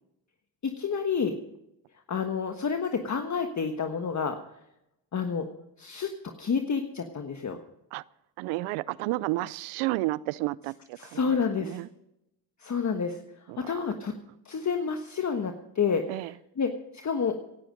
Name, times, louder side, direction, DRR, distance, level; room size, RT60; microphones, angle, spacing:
voice 1, 0.6-1.4 2.1-4.4 5.1-5.5 5.8-6.1 6.4-7.6 11.0-11.8 12.6-13.2 13.6-14.1 14.4-17.4, left 6 dB, 35° left, 5 dB, 1.4 m, -29 dB
voice 2, 8.4-11.9 13.5-13.7 16.1-16.3, right 19 dB, 90° right, 22 dB, 0.6 m, -32 dB
17.0 x 11.5 x 5.2 m, 0.84 s
supercardioid pair, 75°, 48 cm